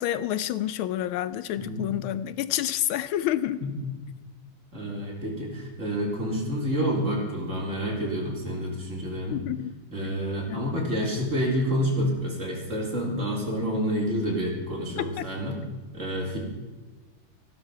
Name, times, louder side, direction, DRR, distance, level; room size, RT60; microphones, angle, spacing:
voice 1, 0.0-3.6 9.3-9.7 10.5-10.7 15.2-15.3, left 12 dB, 80° left, 15 dB, 1.4 m, -28 dB
voice 2, 1.6-1.9 3.6-3.9 4.7-9.4 9.9-15.6 15.9-16.4, equal, 35° right, -2 dB, 4.0 m, -28 dB
15.0 x 12.0 x 5.6 m, 1.3 s
omnidirectional pair, 2.3 m